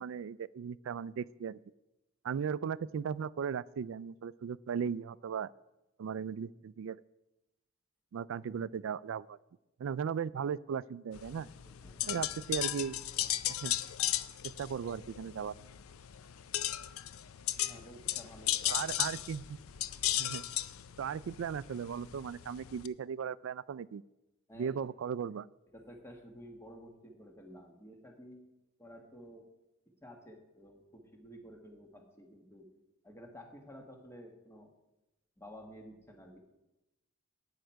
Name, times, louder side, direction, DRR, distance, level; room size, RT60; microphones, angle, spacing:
voice 1, 0.0-1.6 2.2-5.5 6.0-7.0 8.1-9.4 9.8-11.5 12.1-13.0 13.6-13.7 14.4-15.5 18.7-19.6 20.2-20.4 21.0-24.0 24.6-25.5, right 7 dB, 65° right, 20 dB, 0.3 m, -37 dB
sound 1, 11.1-22.9, left 13 dB, 85° left, 0.4 m, -36 dB
voice 2, 11.6-12.2 17.6-18.8 24.5-24.8 25.7-28.4 28.8-29.5 29.9-32.7 33.0-34.7 35.4-36.4, equal, 15° left, 2 dB, 1.5 m, -52 dB
11.5 x 8.9 x 4.6 m, 0.95 s
head